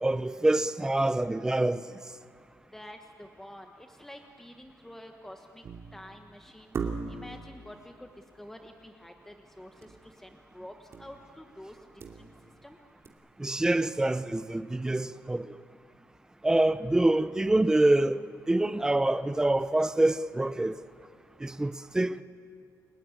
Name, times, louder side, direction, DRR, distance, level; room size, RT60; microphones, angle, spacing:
voice 1, 0.0-1.8 13.4-15.5 16.4-20.8 21.4-22.2, right 2 dB, 10° right, 0.7 m, -26 dB
voice 2, 2.7-5.6 5.9-6.7 7.1-8.1 8.3-12.3 12.6-12.8, left 1 dB, 5° left, 1.3 m, -48 dB
sound 1, 5.6-6.1 6.7-7.4 9.8-10.1 10.3-10.4 10.9-11.2 11.7-12.6 13.0-13.1, right 5 dB, 45° right, 2.6 m, -37 dB
30.0 x 18.5 x 9.7 m
cardioid pair, 145°, 6 cm